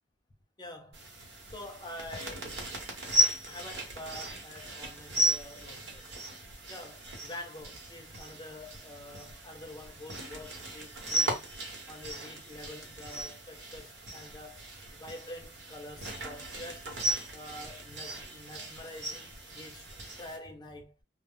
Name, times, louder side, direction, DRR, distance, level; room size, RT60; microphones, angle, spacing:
voice 1, 0.6-1.1 1.5-2.5 3.4-6.1 6.7-11.5 11.9-14.6 14.9-16.9 17.3-19.8 20.2-20.9, left 1 dB, 25° left, 0.6 m, -46 dB
sound 1, 0.9-20.4, right 1 dB, 85° right, 1.0 m, -36 dB
2.1 x 2.0 x 3.6 m
head